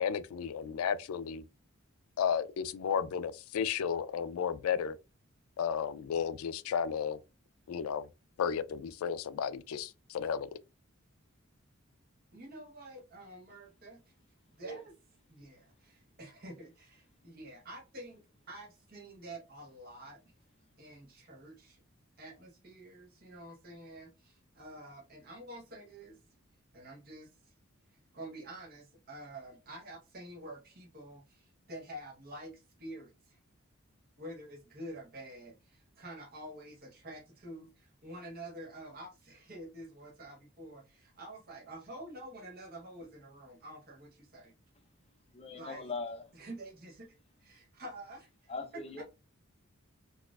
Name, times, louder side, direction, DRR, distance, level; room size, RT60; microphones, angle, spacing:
voice 1, 0.0-1.4 2.2-5.0 5.6-7.2 7.7-8.1 8.4-10.6, left 7 dB, 85° left, 0.3 m, -33 dB
voice 2, 12.3-14.0 14.5-14.9 15.3-20.3 20.8-21.8 22.2-26.2 26.7-27.5 27.9-33.4 34.2-44.5 45.5-45.9 46.3-49.0, right 1 dB, 45° right, 0.9 m, -48 dB
voice 3, 45.3-46.2 48.5-49.0, left 3 dB, 30° left, 0.6 m, -40 dB
4.0 x 2.4 x 2.3 m
head